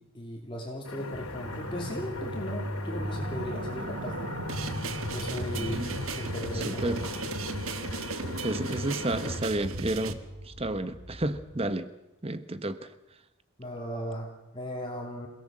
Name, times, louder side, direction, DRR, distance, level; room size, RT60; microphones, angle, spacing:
voice 1, 0.0-4.3 5.1-7.0 13.6-15.3, equal, 25° left, 2.9 m, -37 dB
sound 1, 0.8-9.4, left 3 dB, 85° left, 3.4 m, -40 dB
sound 2, 1.1-11.6, equal, 50° right, 2.4 m, -38 dB
sound 3, 4.5-10.1, right 3 dB, 70° right, 1.5 m, -36 dB
voice 2, 5.6-5.9 6.5-7.0 8.4-11.9 12.2-12.9, right 1 dB, 25° right, 1.1 m, -31 dB
28.0 x 17.0 x 7.6 m
head